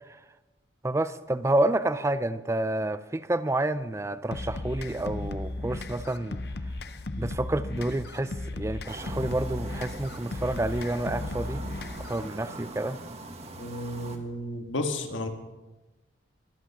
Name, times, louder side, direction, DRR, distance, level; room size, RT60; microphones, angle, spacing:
voice 1, 0.8-6.4 7.2-11.6 12.1-13.0, right 1 dB, 15° right, 14 dB, 0.4 m, -29 dB
sound 1, 4.3-12.3, left 2 dB, 55° left, 0.7 m, -36 dB
sound 2, 8.9-14.2, right 2 dB, 35° right, 1.5 m, -42 dB
voice 2, 13.6-15.3, left 1 dB, 85° left, 5 dB, 1.7 m, -32 dB
24.0 x 8.6 x 6.1 m, 1.1 s
head